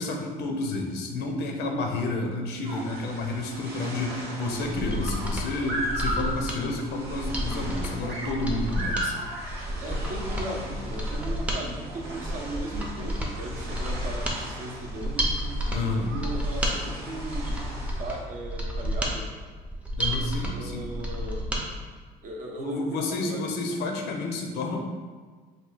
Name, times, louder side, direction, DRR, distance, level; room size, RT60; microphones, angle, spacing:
voice 1, 0.0-9.2 15.7-16.1 20.0-20.9 22.6-24.8, left 2 dB, 75° left, 2 dB, 0.6 m, -30 dB
sound 1, 2.6-18.2, right 1 dB, 80° right, 0.9 m, -37 dB
Mechanisms, 4.7-21.6 22.0-22.1, equal, 10° right, 0.5 m, -31 dB
voice 2, 9.8-17.7 18.0-19.3 20.5-21.5 22.2-23.9, right 2 dB, 50° right, 0 dB, 0.6 m, -37 dB
3.1 x 2.2 x 3.8 m, 1.5 s
cardioid pair, 110°, 17 cm